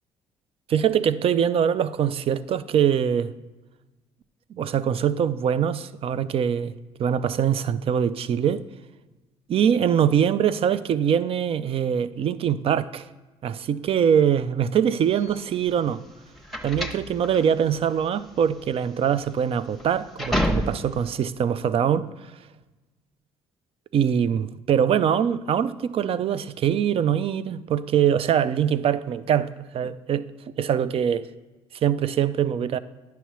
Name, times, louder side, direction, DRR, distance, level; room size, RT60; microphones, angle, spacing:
voice 1, 0.7-3.3 4.5-6.7 7.0-8.6 9.5-13.1 13.4-16.0 16.6-22.1 23.9-30.3 30.6-31.3 31.8-32.8, right 8 dB, 50° right, 0.4 m, -23 dB
sound 1, 15.1-21.1, left 1 dB, ahead, 0.9 m, -30 dB
9.9 x 5.7 x 3.1 m
supercardioid pair, 65°, 12 cm